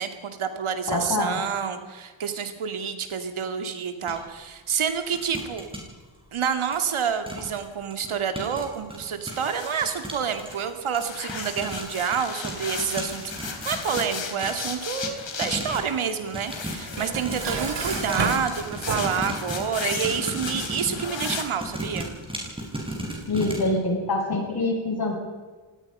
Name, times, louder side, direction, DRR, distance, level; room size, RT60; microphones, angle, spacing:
voice 1, 0.0-5.7 6.3-22.1, right 7 dB, 85° right, 8 dB, 2.6 m, -28 dB
voice 2, 0.9-1.4 23.3-25.1, left 2 dB, 50° left, 0 dB, 7.9 m, -25 dB
sound 1, 4.1-4.2 5.1-5.8 6.7-6.8 7.3-7.6 7.9-16.0 16.3-23.7, right 1 dB, 10° right, 6.7 m, -35 dB
sound 2, 9.3-10.7 11.0-21.4, left 5 dB, 65° left, 3.7 m, -36 dB
Dishes pots and pans, 17.0-19.4, right 4 dB, 60° right, 2.7 m, -30 dB
25.0 x 19.0 x 5.7 m, 1.4 s
wide cardioid pair, 105°, 48 cm